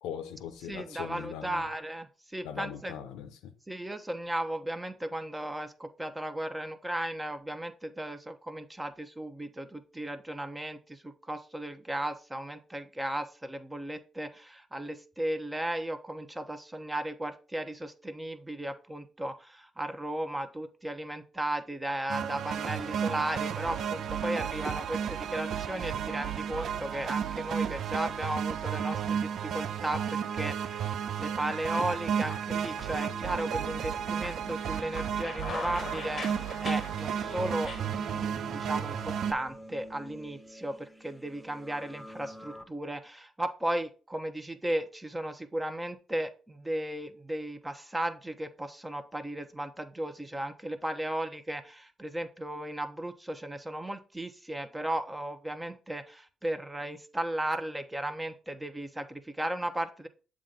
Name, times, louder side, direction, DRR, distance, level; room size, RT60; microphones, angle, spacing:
voice 1, 0.0-1.7 2.4-3.5, left 9 dB, 85° left, 0.6 m, -40 dB
voice 2, 0.7-2.9 3.7-60.1, right 1 dB, 15° right, 0.8 m, -35 dB
sound 1, 22.0-22.7 23.1-23.7 24.1-24.7 25.0-25.1 26.0-27.1 27.5-28.5 28.9-29.0 29.9-30.5 30.8-31.0 31.4-33.7 34.0-37.8, left 5 dB, 50° left, 0.8 m, -44 dB
sound 2, 22.1-39.3, right 8 dB, 65° right, 0.4 m, -33 dB
sound 3, 32.6-42.6, equal, 5° left, 1.1 m, -48 dB
7.4 x 2.5 x 5.3 m
supercardioid pair, 60°, 0 cm